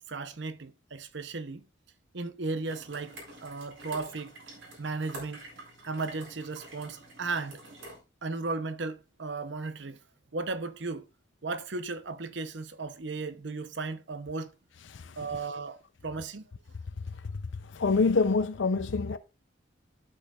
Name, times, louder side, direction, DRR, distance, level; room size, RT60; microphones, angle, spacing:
voice 1, 0.0-1.6 2.1-4.3 4.8-5.4 5.9-7.6 8.2-10.0 10.3-11.1 11.4-14.5 15.2-16.4, right 3 dB, 65° right, 0.8 m, -35 dB
sound 1, 2.7-8.0, right 2 dB, 90° right, 4.2 m, -47 dB
voice 2, 17.7-19.2, left 4 dB, 75° left, 0.6 m, -26 dB
12.0 x 6.3 x 2.4 m
head